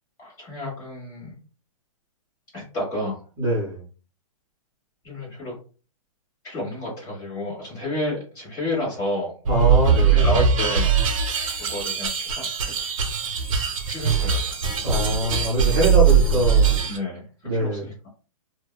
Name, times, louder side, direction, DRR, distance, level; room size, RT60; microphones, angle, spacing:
voice 1, 0.2-1.4 2.5-3.2 5.0-5.6 6.4-9.3 10.1-11.0 11.5-12.7 13.9-14.6 16.8-18.1, left 1 dB, 20° left, -5 dB, 1.2 m, -30 dB
voice 2, 3.4-3.8 9.5-10.2 14.8-16.7 17.4-17.8, equal, 20° right, -5 dB, 0.7 m, -23 dB
sound 1, 9.4-17.0, right 6 dB, 65° right, 0.8 m, -21 dB
2.6 x 2.1 x 2.3 m, 0.37 s
hypercardioid pair, 165°, 19 cm